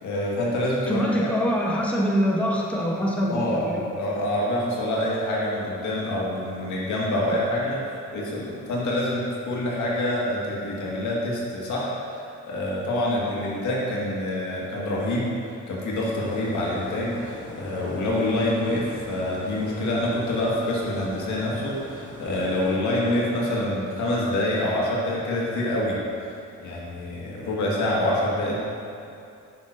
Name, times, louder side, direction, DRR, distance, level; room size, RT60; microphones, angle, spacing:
voice 1, 0.0-1.3 1.7-1.8 3.3-15.3 15.7-26.0 26.6-28.6, left 1 dB, 75° left, -4 dB, 1.7 m, -26 dB
voice 2, 0.9-3.8, equal, 5° left, -3 dB, 0.9 m, -24 dB
sound 1, 15.9-22.8, left 1 dB, 25° left, 1.5 m, -42 dB
9.4 x 6.2 x 2.6 m, 2.6 s
cardioid pair, 90°, 30 cm